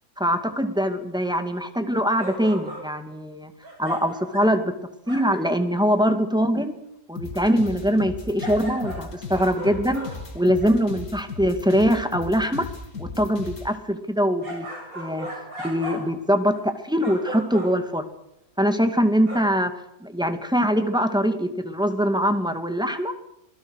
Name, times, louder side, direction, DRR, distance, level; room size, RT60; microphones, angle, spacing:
voice 1, 0.2-3.5 3.8-4.7 5.1-6.7 7.1-10.0 10.3-12.7 13.0-14.7 15.0-15.3 15.6-18.1 18.6-19.7 20.0-23.1, equal, 5° right, 7 dB, 2.1 m, -23 dB
sound 1, 2.2-3.0 3.6-4.6 5.1-5.6 8.4-10.8 14.4-16.2 16.5-16.7 17.0-17.9 19.3-19.4, right 2 dB, 55° right, 7.8 m, -36 dB
sound 2, 7.2-13.7, left 4 dB, 60° left, 3.6 m, -36 dB
27.0 x 21.0 x 6.5 m, 0.80 s
omnidirectional pair, 1.8 m